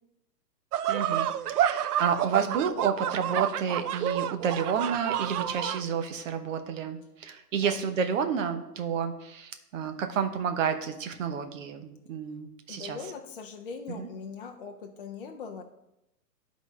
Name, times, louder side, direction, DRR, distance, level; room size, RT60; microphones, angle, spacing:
sound 1, 0.7-5.8, right 10 dB, 65° right, 0.5 m, -29 dB
voice 1, 0.9-13.0 13.9-14.1, right 7 dB, 50° right, 7 dB, 1.0 m, -30 dB
voice 2, 12.7-15.6, left 5 dB, 35° left, 2 dB, 0.4 m, -41 dB
12.0 x 4.1 x 3.6 m, 0.88 s
hypercardioid pair, 145°, 49 cm